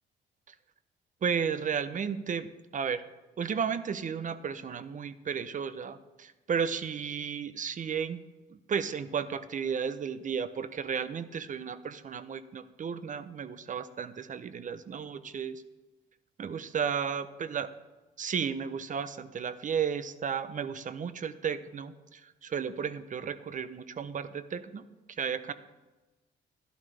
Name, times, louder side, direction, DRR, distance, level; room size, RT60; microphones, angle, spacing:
voice 1, 1.2-3.0 3.4-8.2 8.7-15.6 16.4-17.7 18.2-24.8 25.2-25.5, right 7 dB, 40° right, 14 dB, 0.6 m, -33 dB
12.5 x 11.5 x 3.4 m, 1.2 s
cardioid pair, 90°, 20 cm